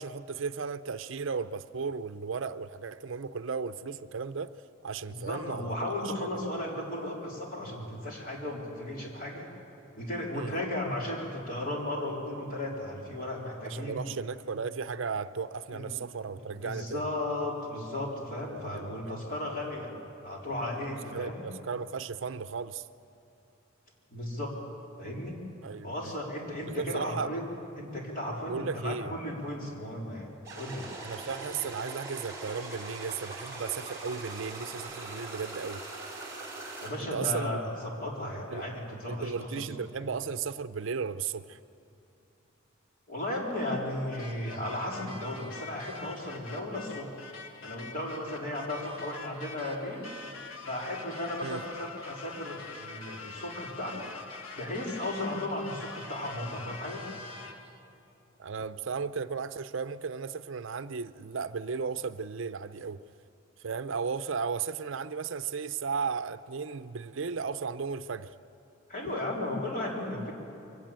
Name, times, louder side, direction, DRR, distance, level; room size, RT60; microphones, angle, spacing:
voice 1, 0.0-4.5 4.8-5.9 6.4-6.5 10.3-10.5 13.6-17.1 18.7-19.2 21.1-22.9 25.6-26.1 26.8-27.3 28.5-29.1 31.0-35.8 37.1-37.6 38.5-38.6 39.1-41.6 51.4-51.6 58.4-63.0 63.6-68.3, right 5 dB, 60° right, 12 dB, 0.6 m, -35 dB
voice 2, 5.1-9.5 9.9-14.1 15.7-15.9 16.6-19.9 20.2-21.4 24.1-24.5 25.0-25.4 25.8-27.5 27.8-30.8 36.8-39.7 43.1-47.1 47.6-50.1 50.7-54.1 54.5-57.0 68.9-70.3, left 1 dB, 40° left, -1 dB, 4.1 m, -35 dB
sound 1, 30.4-36.9, right 2 dB, 15° right, 5.1 m, -41 dB
sound 2, 44.1-57.8, left 4 dB, 85° left, 1.6 m, -45 dB
23.5 x 17.0 x 8.8 m, 2.9 s
head